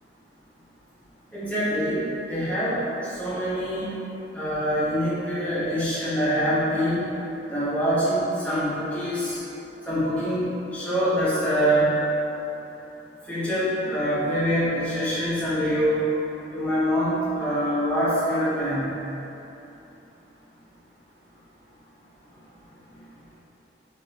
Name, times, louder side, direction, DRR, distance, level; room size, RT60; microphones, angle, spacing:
voice 1, 1.3-2.0 2.2-2.8 3.1-3.9 4.3-7.1 7.5-9.4 9.9-12.0 13.3-16.1 16.5-18.9, equal, 10° left, -12 dB, 1.1 m, -24 dB
3.8 x 3.6 x 2.8 m, 3.0 s
head